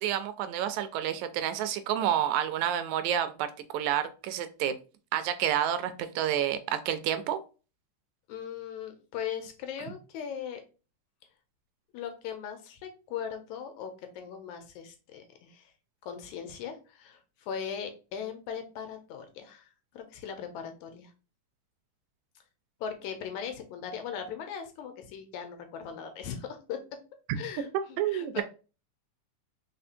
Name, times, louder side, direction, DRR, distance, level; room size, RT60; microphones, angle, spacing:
voice 1, 0.0-4.7 5.1-7.4 28.0-28.4, right 10 dB, 80° right, 11 dB, 1.8 m, -29 dB
voice 2, 8.3-10.6 11.9-15.7 16.0-19.7 19.9-21.1 22.8-26.8 27.3-28.4, left 7 dB, 75° left, 6 dB, 2.1 m, -39 dB
4.4 x 4.2 x 2.5 m, 0.33 s
omnidirectional pair, 3.4 m